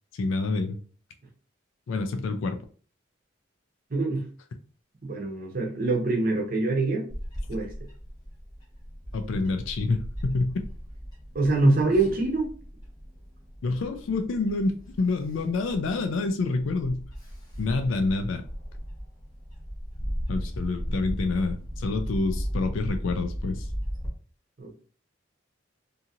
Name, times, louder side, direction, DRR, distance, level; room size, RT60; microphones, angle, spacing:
voice 1, 0.1-0.8 1.9-2.6 9.1-10.6 13.6-17.0 17.6-18.4 20.3-23.7, left 3 dB, 75° left, 0.4 m, -27 dB
voice 2, 3.9-4.2 5.0-7.1 7.5-7.7 11.3-12.5 24.6-24.8, right 2 dB, 45° right, 0.7 m, -24 dB
Bird / Wind, 7.1-24.1, equal, 20° left, 0.9 m, -37 dB
2.8 x 2.7 x 2.4 m
head